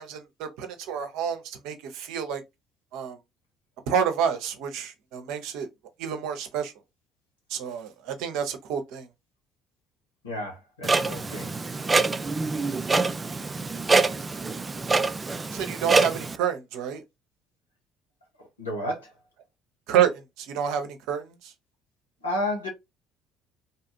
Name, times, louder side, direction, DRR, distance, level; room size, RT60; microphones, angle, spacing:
voice 1, 0.0-2.4 2.9-3.2 3.9-5.7 6.0-6.7 7.5-9.1 12.7-12.8 15.5-17.0 19.9-21.5, right 8 dB, 65° right, 0.7 m, -29 dB
voice 2, 10.2-11.5 18.6-19.2 22.2-22.7, left 1 dB, 85° left, 1.1 m, -31 dB
Clock, 10.8-16.4, right 3 dB, 25° right, 0.3 m, -25 dB
2.8 x 2.4 x 2.7 m
figure-of-eight pair, 55°, 0 cm